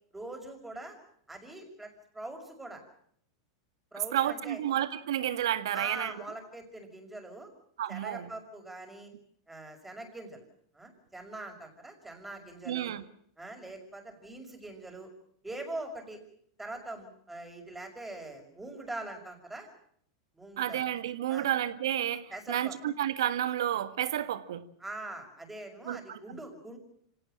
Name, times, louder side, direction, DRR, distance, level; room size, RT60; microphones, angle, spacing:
voice 1, 0.1-1.0 1.3-2.8 3.9-4.6 5.7-7.5 7.9-9.1 9.5-10.4 10.7-12.9 13.4-15.1 15.4-16.2 16.6-19.7 20.3-20.8 21.3-21.5 22.3-22.7 24.8-26.8, right 2 dB, 10° right, 6.0 m, -43 dB
voice 2, 4.1-6.1 7.8-8.3 12.7-13.0 20.6-24.6 25.9-26.4, right 11 dB, 80° right, 1.8 m, -31 dB
26.0 x 17.5 x 8.9 m
hypercardioid pair, 120°, 2 cm